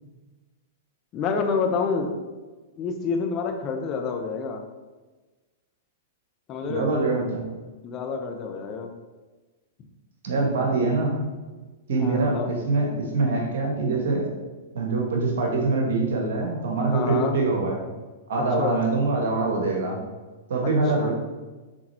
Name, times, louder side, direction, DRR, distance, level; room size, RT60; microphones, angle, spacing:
voice 1, 1.1-2.1 2.8-4.6 6.5-6.9 7.8-8.9 12.0-12.5 16.9-17.4 18.6-18.8 21.0-21.1, left 5 dB, 35° left, 4 dB, 1.0 m, -28 dB
voice 2, 6.7-7.4 10.2-11.3 11.9-14.3 14.7-17.8 18.3-20.0 20.5-21.1, right 3 dB, 70° right, 0 dB, 1.6 m, -24 dB
6.2 x 4.1 x 4.4 m, 1.3 s
hypercardioid pair, 115°, 0 cm